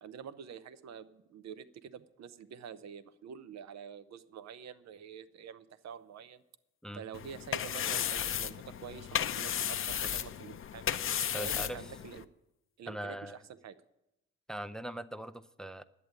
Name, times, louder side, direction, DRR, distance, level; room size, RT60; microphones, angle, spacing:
voice 1, 0.0-6.4 6.9-10.9 11.4-12.3 12.8-13.8, right 8 dB, 60° right, 14 dB, 0.8 m, -47 dB
sound 1, 7.1-12.2, left 9 dB, 45° left, 0.6 m, -34 dB
voice 2, 11.3-11.8 12.9-13.4 14.5-15.8, equal, ahead, 14 dB, 0.5 m, -41 dB
11.0 x 8.3 x 9.0 m, 0.89 s
cardioid pair, 90°, 30 cm